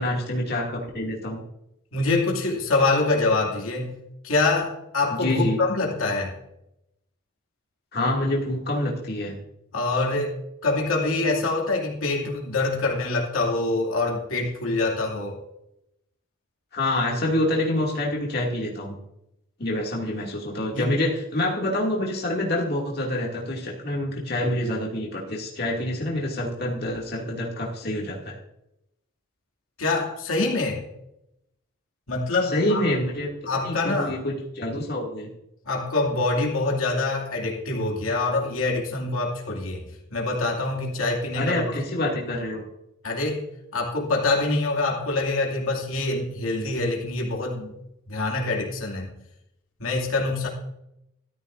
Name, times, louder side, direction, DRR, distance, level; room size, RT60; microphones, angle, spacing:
voice 1, 0.0-1.4 5.2-5.6 7.9-9.4 16.7-18.9 19.6-28.4 32.4-33.3 33.6-35.3 41.3-42.6, left 1 dB, 50° left, -3 dB, 2.5 m, -27 dB
voice 2, 1.9-3.9 4.2-6.4 9.7-10.4 10.6-15.4 20.7-21.0 29.8-30.8 32.1-32.8 33.5-34.2 35.7-41.8 43.0-43.4 43.7-47.7 48.1-49.1 49.8-50.5, left 3 dB, 85° left, -1 dB, 2.6 m, -25 dB
13.5 x 13.5 x 2.6 m, 0.82 s
head